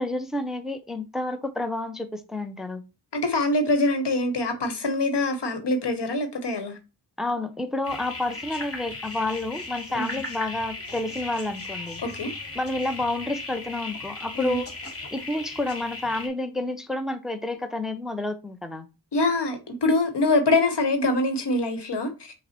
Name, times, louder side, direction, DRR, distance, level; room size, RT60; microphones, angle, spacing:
voice 1, 0.0-2.8 7.2-12.0 12.5-14.7 15.1-18.9, left 2 dB, ahead, 0.5 m, -29 dB
voice 2, 3.1-6.8 9.9-10.2 12.0-12.3 14.4-14.6 19.1-22.3, left 2 dB, 90° left, 1.0 m, -24 dB
sound 1, 7.8-16.3, left 2 dB, 35° left, 1.2 m, -37 dB
5.7 x 2.0 x 4.2 m
wide cardioid pair, 60°, 40 cm